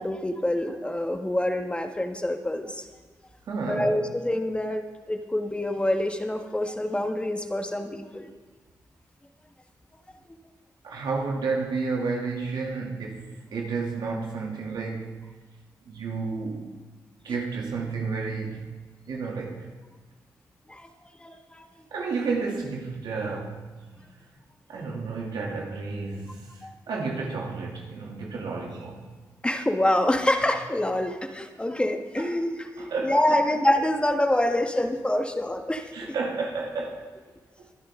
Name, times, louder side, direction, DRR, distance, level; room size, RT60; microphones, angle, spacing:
voice 1, 0.0-2.8 3.7-8.3 20.7-20.9 21.2-21.6 26.6-26.7 29.4-36.1, left 1 dB, 15° left, 5 dB, 1.5 m, -26 dB
voice 2, 3.5-4.0 10.8-15.2 15.8-16.8 17.2-18.7 19.1-19.7 21.9-23.7 24.7-29.1 32.2-32.3 32.8-33.4 35.9-37.1 37.6-37.7, right 4 dB, 90° right, -1 dB, 2.7 m, -31 dB
22.5 x 10.0 x 3.8 m, 1.3 s
cardioid pair, 75°, 7 cm